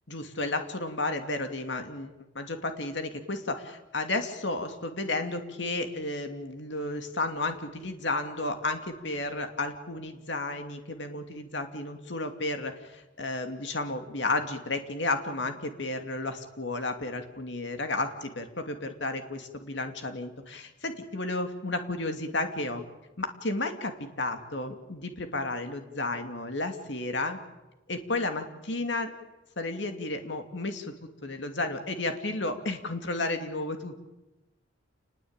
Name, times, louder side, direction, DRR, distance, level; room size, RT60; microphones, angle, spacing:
voice 1, 0.1-2.1 2.3-22.8 23.2-27.4 27.9-29.1 29.6-30.9 31.2-34.1, left 2 dB, 65° left, 6 dB, 2.6 m, -32 dB
28.5 x 20.5 x 9.0 m, 1.0 s
head